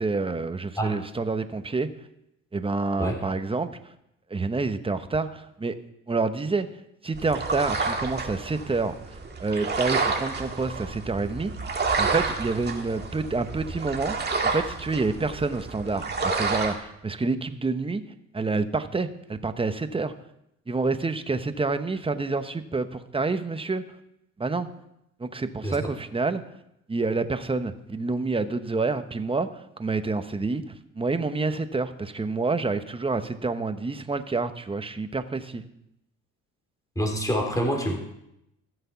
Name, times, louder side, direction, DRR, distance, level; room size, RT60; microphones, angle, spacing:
voice 1, 0.0-1.9 2.5-3.7 4.3-5.7 6.1-6.7 7.0-8.9 9.4-11.5 12.0-18.0 18.3-20.1 20.7-23.8 24.4-24.7 25.2-26.4 26.9-30.6 30.9-35.6, right 3 dB, 20° right, 10 dB, 0.9 m, -28 dB
sound 1, 7.1-16.7, right 4 dB, 35° right, 2.0 m, -29 dB
voice 2, 36.9-38.0, equal, 10° left, 2 dB, 3.3 m, -26 dB
14.5 x 7.8 x 5.8 m, 0.81 s
cardioid pair, 90°, 30 cm